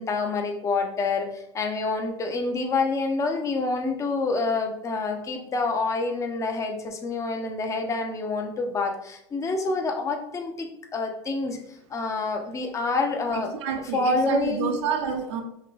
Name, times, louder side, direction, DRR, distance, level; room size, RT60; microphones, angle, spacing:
voice 1, 0.0-11.6 11.9-13.5 13.9-14.8, left 3 dB, 20° left, 4 dB, 0.7 m, -27 dB
voice 2, 13.5-15.4, right 6 dB, 80° right, 4 dB, 0.8 m, -28 dB
5.6 x 2.2 x 3.3 m, 0.79 s
supercardioid pair, 130°, 15 cm